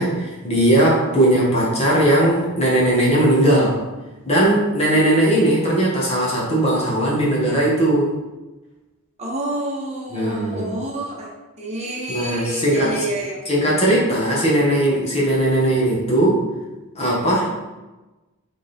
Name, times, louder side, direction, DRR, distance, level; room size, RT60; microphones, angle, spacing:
voice 1, 0.0-3.8 4.2-8.1 10.1-10.7 12.1-13.0 13.5-16.4 16.9-17.5, right 1 dB, 30° left, -5 dB, 1.6 m, -18 dB
voice 2, 9.2-11.3 11.6-13.7, right 1 dB, 30° right, -4 dB, 1.1 m, -28 dB
6.4 x 3.8 x 4.4 m, 1.1 s
head